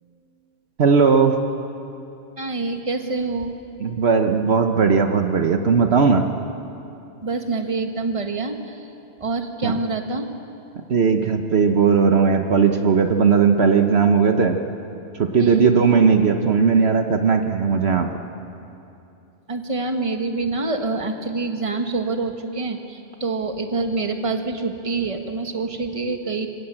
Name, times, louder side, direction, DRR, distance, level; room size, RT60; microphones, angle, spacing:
voice 1, 0.8-1.4 3.8-6.3 9.6-9.7 10.9-14.6 15.2-18.1, right 5 dB, 60° right, 5 dB, 1.2 m, -17 dB
voice 2, 2.4-3.6 7.2-8.9 9.2-10.3 15.4-15.7 19.5-26.5, right 3 dB, 25° right, 5 dB, 1.5 m, -26 dB
26.5 x 16.0 x 8.9 m, 2.8 s
omnidirectional pair, 1.2 m